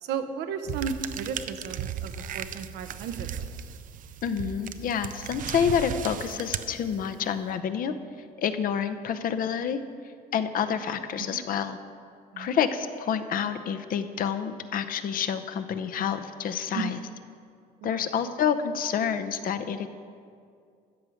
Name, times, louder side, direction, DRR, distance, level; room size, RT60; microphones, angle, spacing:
voice 1, 0.0-3.4 11.3-11.4 12.3-12.6 16.7-16.9 17.8-18.1, right 6 dB, 80° right, 9 dB, 0.8 m, -34 dB
sound 1, 0.7-7.3, right 9 dB, 50° right, 0.5 m, -36 dB
voice 2, 4.2-7.9 8.4-9.8 10.3-11.8 12.4-17.0 17.8-19.9, left 8 dB, 55° left, 10 dB, 0.7 m, -28 dB
13.5 x 5.1 x 8.4 m, 2.3 s
cardioid pair, 110°, 17 cm